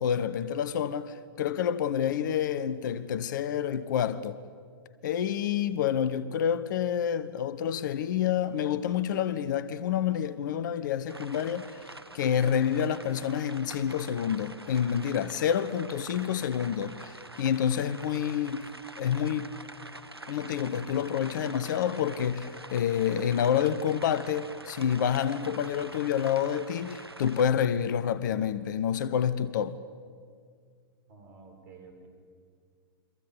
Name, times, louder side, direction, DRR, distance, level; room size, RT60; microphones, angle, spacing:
voice 1, 0.0-4.4 5.0-18.7 19.0-19.6 20.3-29.8, left 9 dB, 50° left, 1.1 m, -28 dB
sound 1, 11.1-27.4, right 1 dB, 90° right, 1.2 m, -46 dB
voice 2, 31.1-32.1, right 4 dB, 50° right, 7.1 m, -51 dB
29.0 x 24.5 x 8.1 m
figure-of-eight pair, 105°, 13 cm